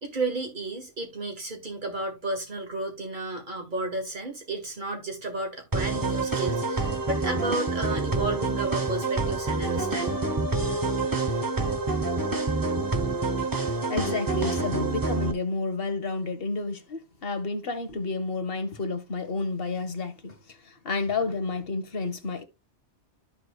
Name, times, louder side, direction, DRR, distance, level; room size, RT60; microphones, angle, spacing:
voice 1, 0.0-10.2, right 2 dB, 45° right, 2.1 m, -32 dB
sound 1, 5.7-15.3, right 3 dB, 20° right, 0.8 m, -27 dB
voice 2, 13.9-22.4, left 3 dB, 55° left, 1.3 m, -30 dB
13.5 x 4.7 x 2.2 m
omnidirectional pair, 1.2 m